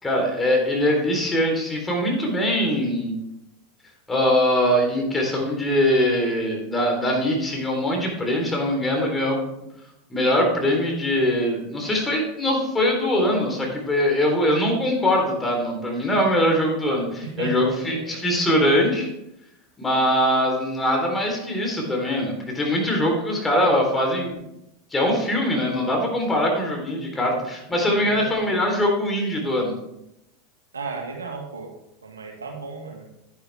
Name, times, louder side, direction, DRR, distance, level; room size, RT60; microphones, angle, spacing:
voice 1, 0.0-3.2 4.1-9.4 10.1-19.1 19.8-24.4 24.9-29.7, equal, 15° left, 1 dB, 3.7 m, -22 dB
voice 2, 17.2-18.2 28.0-28.3 30.7-31.7 32.0-33.1, right 4 dB, 85° right, 1 dB, 2.0 m, -34 dB
10.5 x 10.0 x 3.5 m, 0.85 s
hypercardioid pair, 90°, 0 cm